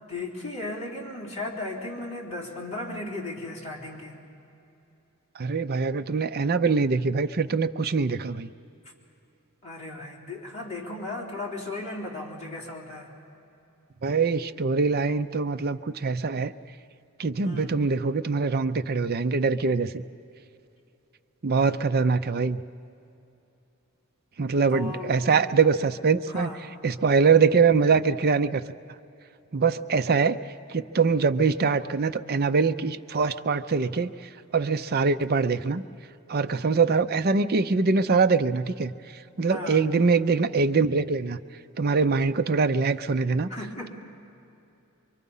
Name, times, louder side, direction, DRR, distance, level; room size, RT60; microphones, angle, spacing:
voice 1, 0.1-4.2 9.6-13.1 17.4-17.8 24.7-25.3 26.3-26.7 39.5-39.9 43.5-43.9, left 2 dB, 30° left, -3 dB, 3.4 m, -36 dB
voice 2, 5.4-8.5 14.0-16.5 17.2-20.0 21.4-22.6 24.4-26.5 26.8-28.6 29.5-30.4 30.7-34.1 34.5-35.8 36.3-38.9 39.4-41.4 41.8-43.5, right 4 dB, 45° right, 10 dB, 0.6 m, -23 dB
24.5 x 24.0 x 5.5 m, 2.7 s
head